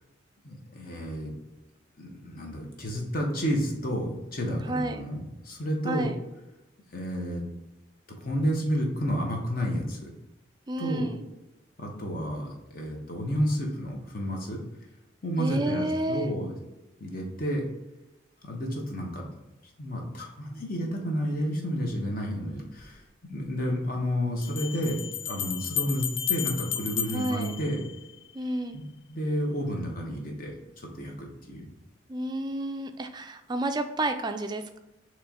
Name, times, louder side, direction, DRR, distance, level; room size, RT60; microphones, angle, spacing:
voice 1, 0.4-1.3 2.0-6.1 6.9-7.4 8.2-10.1 10.8-11.1 11.8-14.6 15.2-16.6 17.0-17.6 18.4-19.3 19.8-25.0 25.3-27.8 28.7-28.8 29.1-31.7, equal, 45° left, 0 dB, 0.9 m, -31 dB
voice 2, 4.7-5.1 5.8-6.2 10.7-11.3 15.4-16.3 27.1-27.5 28.3-28.8 32.1-34.8, right 1 dB, 20° right, 7 dB, 0.3 m, -30 dB
sound 1, 22.8-22.9 24.4-28.4, left 9 dB, 70° left, 0.4 m, -33 dB
4.3 x 3.1 x 3.6 m, 0.98 s
head